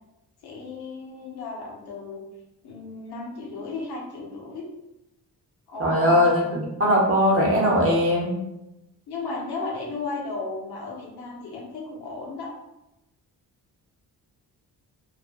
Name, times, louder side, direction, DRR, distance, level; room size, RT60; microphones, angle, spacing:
voice 1, 0.4-2.2 2.6-4.7 5.7-6.4 9.1-12.5, left 3 dB, 80° left, -2 dB, 0.7 m, -34 dB
voice 2, 5.8-8.3, equal, 35° right, -3 dB, 0.8 m, -20 dB
2.5 x 2.2 x 2.4 m, 0.92 s
cardioid pair, 80°, 38 cm